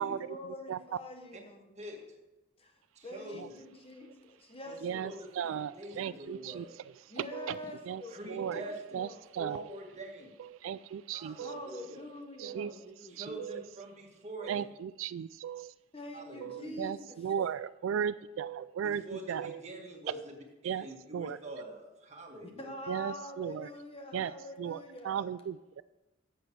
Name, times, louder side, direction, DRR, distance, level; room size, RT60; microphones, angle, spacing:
voice 1, 0.0-1.7 2.6-5.2 7.1-9.3 11.4-13.2 15.9-17.4 22.4-25.3, left 1 dB, 30° left, 4 dB, 1.2 m, -46 dB
voice 2, 3.0-3.6 4.7-6.7 8.1-9.0 9.4-10.4 11.1-12.0 13.1-14.6 16.1-16.8 18.8-22.7, right 1 dB, 35° right, 1 dB, 1.9 m, -45 dB
voice 3, 5.4-5.7 6.0-6.6 7.9-8.0 8.3-8.6 8.9-9.1 9.4-9.6 10.6-11.5 12.4-12.7 14.5-14.6 15.0-15.7 16.5-17.0 17.2-19.0 19.3-19.5 20.7-20.8 21.1-21.4 22.9-23.5 24.1-24.3 24.6-24.8 25.1-25.8, right 8 dB, 80° right, 17 dB, 0.3 m, -35 dB
12.0 x 7.8 x 4.6 m, 1.0 s
head